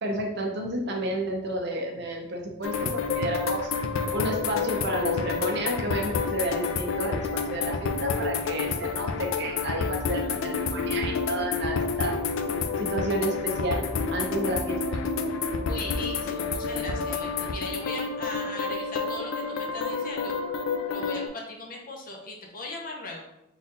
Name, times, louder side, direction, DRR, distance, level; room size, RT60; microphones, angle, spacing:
voice 1, 0.0-3.7 4.1-12.1 12.8-13.8 14.1-15.0, right 1 dB, 55° right, 1 dB, 0.7 m, -31 dB
sound 1, 2.6-21.3, left 4 dB, 80° left, 0.4 m, -29 dB
voice 2, 15.7-20.4 20.9-23.2, left 2 dB, 45° left, 0 dB, 0.8 m, -38 dB
4.0 x 2.6 x 3.9 m, 0.86 s
head